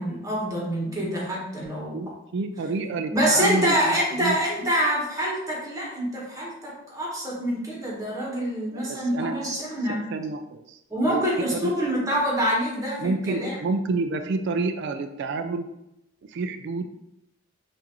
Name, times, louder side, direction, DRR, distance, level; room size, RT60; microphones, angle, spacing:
voice 1, 0.0-2.1 3.1-10.1 10.9-13.6, equal, 15° right, -4 dB, 1.1 m, -26 dB
voice 2, 1.9-4.4 8.7-9.4 9.9-10.8 11.0-11.3 11.6-11.7 13.0-15.7 16.2-16.9, right 3 dB, 60° right, 8 dB, 0.3 m, -29 dB
5.9 x 2.5 x 2.9 m, 0.85 s
head